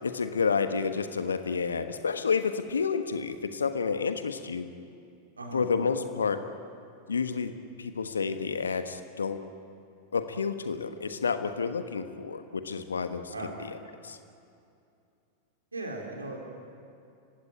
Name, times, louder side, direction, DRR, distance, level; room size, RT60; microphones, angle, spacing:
voice 1, 0.0-4.7 5.5-6.5 7.1-9.4 10.1-13.3 13.6-13.7 14.0-14.2, left 5 dB, 70° left, 9 dB, 1.3 m, -30 dB
voice 2, 15.7-16.7, right 2 dB, 80° right, 1 dB, 4.0 m, -38 dB
30.0 x 16.5 x 9.3 m, 2.5 s
figure-of-eight pair, 90°, 0 cm